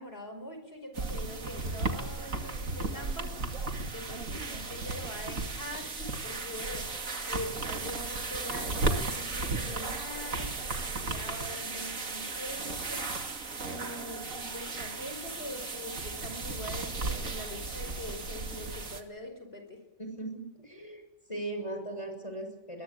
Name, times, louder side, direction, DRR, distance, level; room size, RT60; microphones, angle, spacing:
voice 1, 0.0-7.0 7.3-13.2 13.6-19.8, left 1 dB, 45° left, 7 dB, 5.2 m, -43 dB
sound 1, 0.9-19.0, right 3 dB, 75° right, 2.7 m, -35 dB
voice 2, 20.0-21.0 21.3-22.8, right 2 dB, 20° left, 5 dB, 6.8 m, -38 dB
22.0 x 21.5 x 8.9 m, 0.95 s
omnidirectional pair, 1.4 m